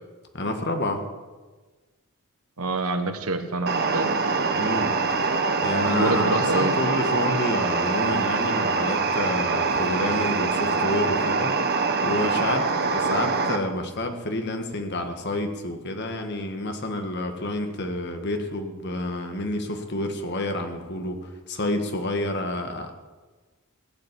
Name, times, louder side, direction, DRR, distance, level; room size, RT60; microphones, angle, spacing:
voice 1, 0.3-1.0 4.5-4.9 5.3-11.5 12.0-22.9, left 1 dB, 50° left, 5 dB, 1.7 m, -29 dB
voice 2, 2.6-4.1 5.9-6.8, right 2 dB, 80° right, 8 dB, 1.4 m, -26 dB
sound 1, 3.7-13.6, right 4 dB, 50° right, 1.2 m, -24 dB
15.5 x 8.7 x 8.2 m, 1.3 s
head